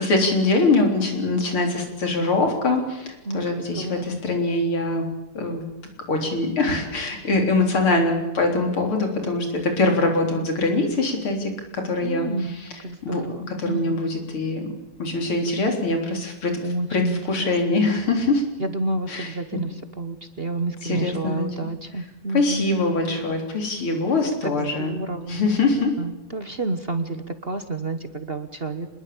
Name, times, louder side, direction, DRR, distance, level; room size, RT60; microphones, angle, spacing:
voice 1, 0.0-5.1 5.3-5.6 6.1-12.3 13.0-13.2 13.5-14.7 15.0-16.5 16.9-17.0 17.3-18.4 19.1-19.6 20.8-21.5 22.3-25.0 25.3-26.0, left 2 dB, 90° left, 3 dB, 4.6 m, -23 dB
voice 2, 3.2-4.2 10.2-10.5 12.0-12.6 12.8-14.0 16.6-17.7 18.6-23.2 24.4-25.4 26.0-28.9, right 2 dB, 35° right, 9 dB, 1.1 m, -30 dB
25.5 x 21.0 x 8.5 m, 0.97 s
omnidirectional pair, 2.3 m